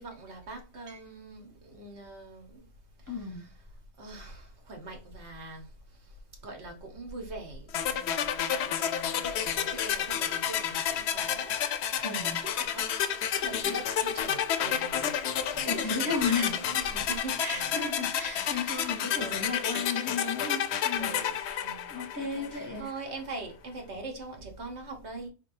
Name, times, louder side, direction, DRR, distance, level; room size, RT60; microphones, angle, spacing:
voice 1, 0.0-2.7 3.1-3.5 4.0-5.7 6.4-11.7 12.0-17.8 18.1-19.7 21.0-22.0 22.3-25.3, right 2 dB, 80° right, 1.5 m, -43 dB
voice 2, 3.1-3.5 12.0-12.4 13.4-13.8 15.7-16.8 17.4-22.9, left 4 dB, 20° left, 0.7 m, -34 dB
sound 1, 7.7-22.7, left 9 dB, 80° left, 0.8 m, -30 dB
4.6 x 3.5 x 2.7 m
omnidirectional pair, 1.1 m